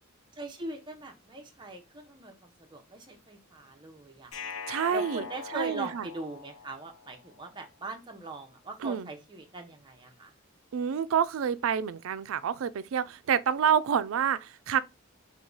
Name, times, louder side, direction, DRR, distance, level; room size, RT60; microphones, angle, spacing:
voice 1, 0.4-4.3 4.9-10.3, right 2 dB, 20° right, 0.7 m, -41 dB
sound 1, 4.3-7.4, left 5 dB, 90° left, 0.6 m, -42 dB
voice 2, 4.7-6.1 8.8-9.1 10.7-14.8, right 8 dB, 75° right, 0.3 m, -28 dB
4.6 x 2.2 x 3.8 m
head